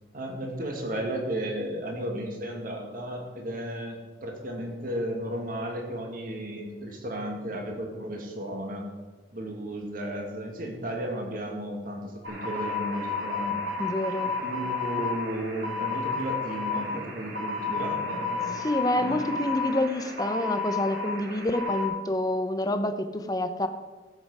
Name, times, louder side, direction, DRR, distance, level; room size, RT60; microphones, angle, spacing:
voice 1, 0.1-8.9 9.3-13.6 14.2-18.6 18.9-19.4, right 1 dB, 50° right, 2 dB, 2.0 m, -34 dB
sound 1, 12.2-21.9, left 4 dB, 90° right, 2.8 m, -32 dB
voice 2, 13.8-14.3 18.5-23.7, left 1 dB, 20° left, 8 dB, 0.8 m, -28 dB
15.0 x 7.8 x 4.9 m, 1.3 s
head